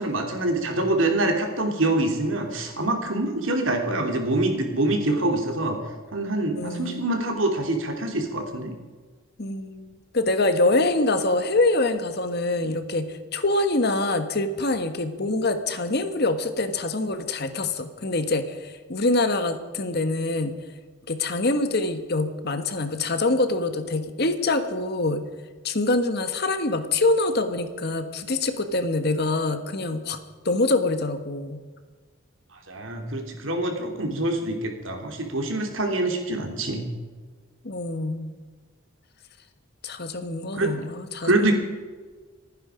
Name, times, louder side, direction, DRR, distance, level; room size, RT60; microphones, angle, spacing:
voice 1, 0.0-5.8 6.1-8.7 32.7-36.8 40.5-40.7 41.2-41.5, right 2 dB, 75° right, 3 dB, 3.2 m, -25 dB
voice 2, 6.5-7.1 9.4-20.5 21.1-25.2 25.6-30.2 30.4-31.6 37.6-38.4 39.8-41.5, left 2 dB, 55° left, 9 dB, 1.4 m, -25 dB
27.5 x 9.9 x 5.1 m, 1.4 s
head